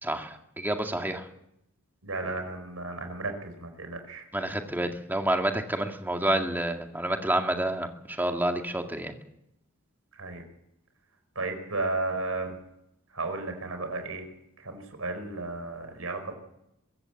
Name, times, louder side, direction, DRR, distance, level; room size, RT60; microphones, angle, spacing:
voice 1, 0.0-1.3 4.3-9.1, right 1 dB, 10° right, 4 dB, 2.0 m, -29 dB
voice 2, 2.0-4.2 10.2-10.4 11.3-12.5 13.1-14.2 14.6-16.3, right 2 dB, 85° right, 6 dB, 4.9 m, -33 dB
24.0 x 15.0 x 8.0 m, 0.81 s
head